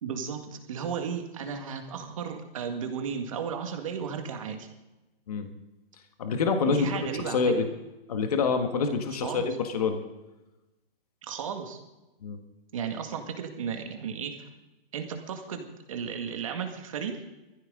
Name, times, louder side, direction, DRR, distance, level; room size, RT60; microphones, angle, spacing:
voice 1, 0.0-4.7 6.7-7.7 9.2-9.5 11.2-11.8 12.7-14.5 14.9-17.2, right 6 dB, 35° right, 5 dB, 1.9 m, -34 dB
voice 2, 6.2-6.9 7.2-7.7 8.1-10.0 12.2-12.4, left 5 dB, 40° left, 5 dB, 1.7 m, -26 dB
20.5 x 14.5 x 3.8 m, 1.0 s
hypercardioid pair, 170°, 30 cm